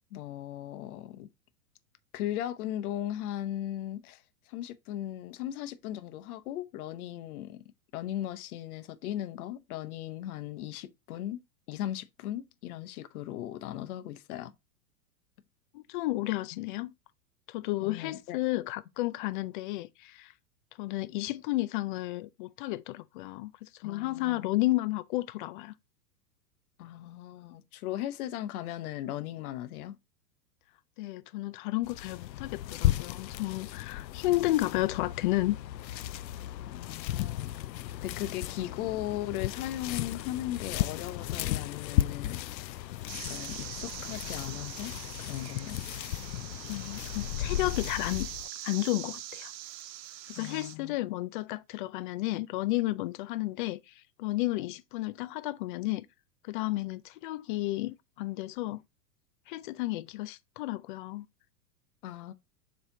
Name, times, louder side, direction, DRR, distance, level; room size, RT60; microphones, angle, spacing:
voice 1, 0.1-1.3 2.1-7.6 7.9-11.4 11.7-14.5 17.8-18.4 23.8-24.5 26.8-30.0 36.7-37.5 38.0-42.8 43.3-44.9 45.3-45.8 50.4-51.0 62.0-62.3, left 12 dB, 60° left, 1.0 m, -37 dB
voice 2, 15.7-16.9 17.5-20.3 20.8-25.7 31.0-35.6 46.7-48.3 48.6-49.5 50.3-53.8 54.2-56.1 56.5-58.8 59.5-61.3, left 18 dB, 35° left, 0.4 m, -32 dB
sound 1, 31.8-48.5, left 13 dB, 85° left, 0.6 m, -35 dB
sound 2, 43.1-50.8, right 12 dB, 75° right, 0.7 m, -43 dB
7.3 x 3.4 x 3.8 m
hypercardioid pair, 115°, 50 cm